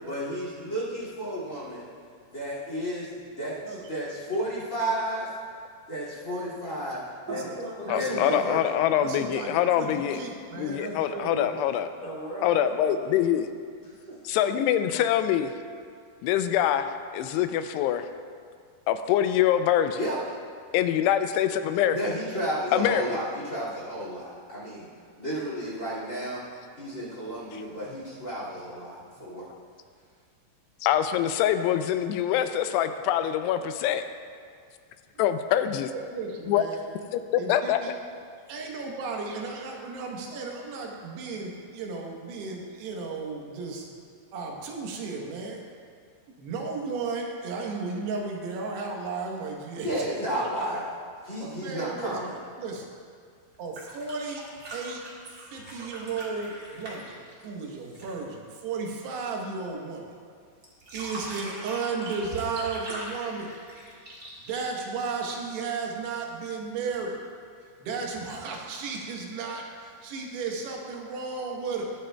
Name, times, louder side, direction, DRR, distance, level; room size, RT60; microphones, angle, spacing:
voice 1, 0.1-1.9 2.3-5.3 5.9-7.0 7.3-7.4 7.9-8.6 20.0-20.2 21.9-24.9 25.2-26.4 26.8-29.5 49.8-50.9 51.2-52.3, equal, 25° left, -7 dB, 1.7 m, -32 dB
voice 2, 3.6-4.0 7.3-7.5 7.9-8.5 9.0-9.5 9.8-11.6 35.6-35.7 35.9-36.9 37.4-37.9 38.5-43.9 44.3-45.6 46.4-50.0 50.4-50.8 51.4-52.2 52.6-52.9 53.6-54.4 54.7-60.1 60.9-63.5 64.4-67.2 67.6-71.9, right 4 dB, 80° right, 0 dB, 3.3 m, -34 dB
voice 3, 7.3-9.9 12.0-13.1 13.8-14.2, right 1 dB, 50° right, -7 dB, 0.6 m, -39 dB
voice 4, 7.9-10.2 10.6-11.9 12.4-13.5 14.3-15.5 16.2-18.1 18.9-20.0 20.7-22.0 22.7-23.0 27.5-27.6 30.8-34.0 35.2-35.9 36.5-36.6 37.1-37.8, left 10 dB, 90° left, 9 dB, 2.7 m, -24 dB
sound 1, 53.5-58.2 60.6-65.5 66.9-67.0, right 1 dB, 30° right, 1.4 m, -41 dB
20.5 x 8.9 x 2.3 m, 2.1 s
omnidirectional pair, 4.7 m